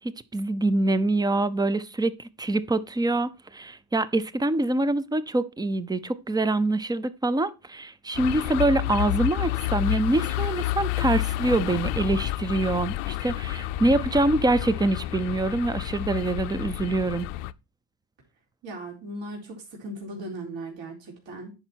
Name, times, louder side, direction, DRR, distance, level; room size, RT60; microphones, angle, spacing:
voice 1, 0.0-17.3, right 2 dB, 10° right, 0.4 m, -25 dB
sound 1, 8.1-17.5, left 15 dB, 80° left, 0.6 m, -30 dB
voice 2, 18.6-21.5, right 1 dB, 60° right, 4.0 m, -38 dB
9.9 x 5.4 x 4.5 m
cardioid pair, 120°, 50 cm